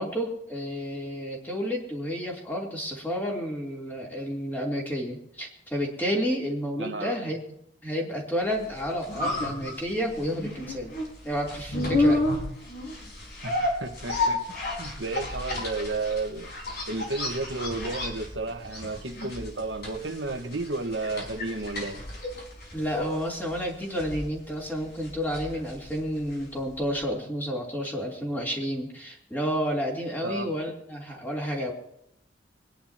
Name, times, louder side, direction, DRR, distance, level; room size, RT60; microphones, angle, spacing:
voice 1, 0.0-7.5 7.8-10.9 11.2-12.2 22.7-31.7, equal, 10° left, 3.3 m, -30 dB
voice 2, 6.8-7.2 13.4-14.4 14.8-16.5 16.9-22.0 30.2-30.5, right 3 dB, 85° right, 1.4 m, -32 dB
sound 1, 8.6-26.6 26.9-27.0, left 2 dB, 60° left, 4.8 m, -31 dB
25.5 x 10.5 x 2.9 m
head